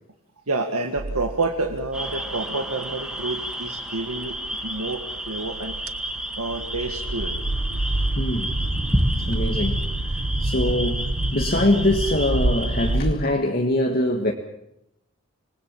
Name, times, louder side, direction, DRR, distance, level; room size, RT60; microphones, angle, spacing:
voice 1, 0.5-4.4 4.6-5.8 6.4-7.3, right 3 dB, 90° right, 3 dB, 1.9 m, -28 dB
sound 1, 1.0-13.1, right 2 dB, 70° right, 1.1 m, -28 dB
sound 2, 1.9-13.0, equal, 5° right, 1.7 m, -31 dB
voice 2, 8.2-8.5 9.3-14.3, left 1 dB, 45° left, 2 dB, 1.7 m, -23 dB
26.5 x 20.5 x 7.4 m, 0.80 s
head